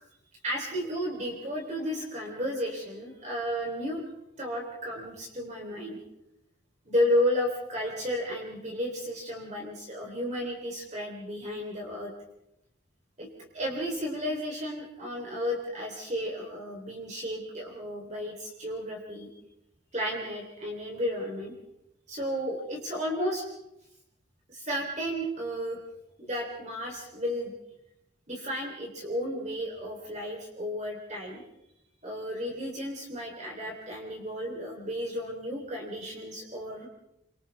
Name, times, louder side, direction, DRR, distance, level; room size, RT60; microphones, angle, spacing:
voice 1, 0.4-4.0 4.4-6.0 6.9-12.1 13.2-13.3 13.5-19.3 19.9-21.5 22.1-23.5 24.5-25.8 26.2-27.5 28.3-31.4 32.0-36.9, equal, 35° right, -1 dB, 3.6 m, -33 dB
29.5 x 25.5 x 3.5 m, 0.84 s
head